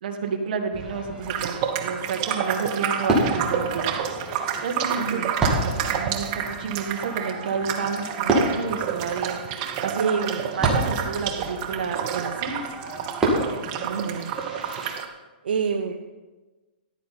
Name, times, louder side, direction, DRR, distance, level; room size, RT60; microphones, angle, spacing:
voice 1, 0.0-10.2 10.6-12.6, right 5 dB, 55° right, 3 dB, 1.9 m, -31 dB
Fireworks, 0.7-14.9, right 2 dB, 10° right, 2.1 m, -30 dB
sound 1, 1.2-15.1, right 8 dB, 30° right, 0.9 m, -29 dB
voice 2, 4.9-5.3 10.0-10.9 13.8-14.3 15.4-15.9, right 6 dB, 75° right, 5 dB, 0.8 m, -28 dB
14.0 x 10.0 x 4.3 m, 1.2 s
hypercardioid pair, 155°, 6 cm